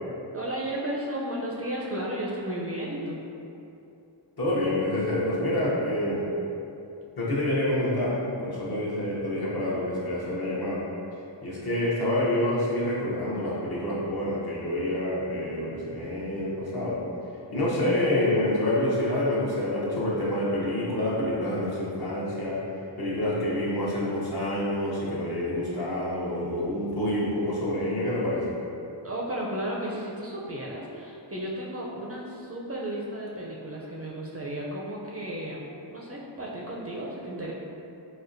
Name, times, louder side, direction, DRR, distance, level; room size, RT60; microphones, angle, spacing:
voice 1, 0.3-3.2 29.0-37.5, right 1 dB, 35° right, -4 dB, 0.4 m, -34 dB
voice 2, 4.4-6.3 7.2-10.8 11.4-17.0 17.5-22.6 23.0-28.5, left 1 dB, 55° left, -7 dB, 0.8 m, -27 dB
4.1 x 2.1 x 2.5 m, 2.7 s
wide cardioid pair, 45°, 46 cm